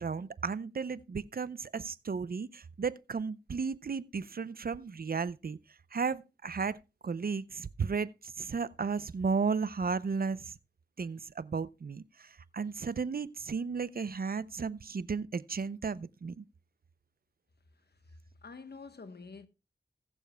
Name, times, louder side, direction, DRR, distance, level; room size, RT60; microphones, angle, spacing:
voice 1, 0.0-5.6 5.9-6.8 7.0-10.5 11.0-16.4, right 5 dB, 55° right, 0.5 m, -34 dB
voice 2, 17.8-18.1 18.4-19.5, left 4 dB, 65° left, 1.2 m, -48 dB
20.0 x 7.1 x 2.3 m
cardioid pair, 45°, 18 cm